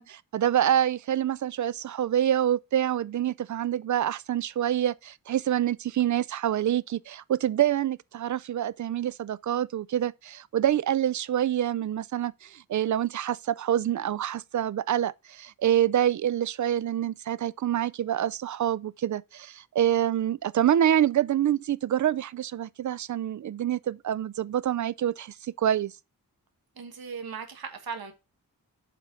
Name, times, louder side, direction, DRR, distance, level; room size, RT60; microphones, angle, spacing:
voice 1, 0.0-25.9, right 11 dB, 55° right, 0.4 m, -26 dB
voice 2, 26.8-28.1, right 6 dB, 85° right, 1.5 m, -37 dB
7.6 x 4.2 x 5.1 m
wide cardioid pair, 125°, 35 cm